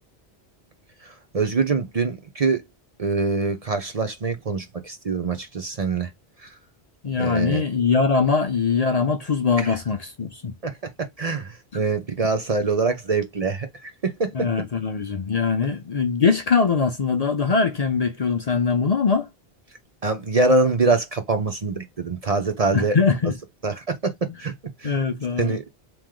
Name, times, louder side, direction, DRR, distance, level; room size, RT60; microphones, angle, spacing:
voice 1, 1.0-2.6 3.0-6.1 6.4-6.5 7.1-7.6 9.6-9.8 10.6-14.5 20.0-23.0 23.6-24.5 24.8-25.0 25.4-25.6, right 3 dB, 40° right, 0.7 m, -24 dB
voice 2, 7.0-10.5 11.7-11.8 14.3-19.3 22.7-23.3 24.8-25.6, left 5 dB, 45° left, 0.6 m, -22 dB
3.1 x 3.1 x 3.6 m
omnidirectional pair, 1.0 m